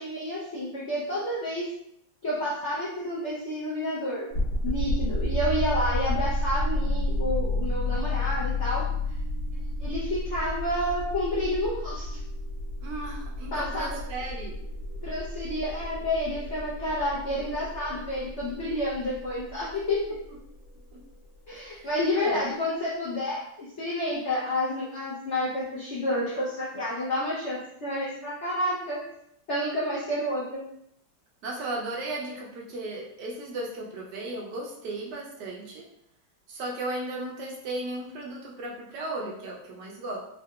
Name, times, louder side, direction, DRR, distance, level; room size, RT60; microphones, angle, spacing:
voice 1, 0.0-1.7 2.2-4.3 4.6-8.8 9.5-12.2 13.5-13.9 15.0-20.0 21.5-29.0 29.5-30.6, left 1 dB, 75° left, -6 dB, 0.6 m, -30 dB
sound 1, 4.3-21.2, left 1 dB, 50° left, 1.3 m, -31 dB
voice 2, 12.8-14.6 20.7-21.0 21.6-22.5 31.4-35.9 36.5-40.2, right 2 dB, 70° right, -2 dB, 1.1 m, -35 dB
3.7 x 2.5 x 2.2 m, 0.75 s
omnidirectional pair, 2.1 m